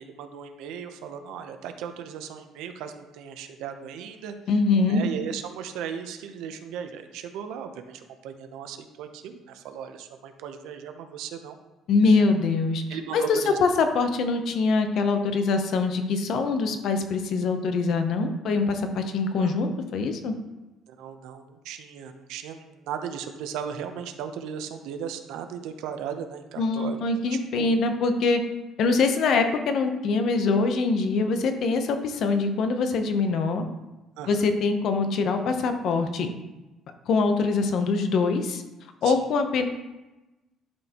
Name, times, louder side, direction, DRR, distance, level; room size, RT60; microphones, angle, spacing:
voice 1, 0.0-4.3 4.9-11.6 12.9-13.6 19.4-19.6 20.9-27.0 27.3-27.7 34.2-34.4 39.0-39.2, right 8 dB, 80° right, 7 dB, 0.7 m, -37 dB
voice 2, 4.5-5.0 11.9-12.8 13.1-20.3 26.6-28.4 28.8-33.6 34.3-36.3 37.1-38.6 39.0-39.7, left 4 dB, 50° left, 7 dB, 0.7 m, -23 dB
11.0 x 4.4 x 2.9 m, 1.1 s
cardioid pair, 165°, 0 cm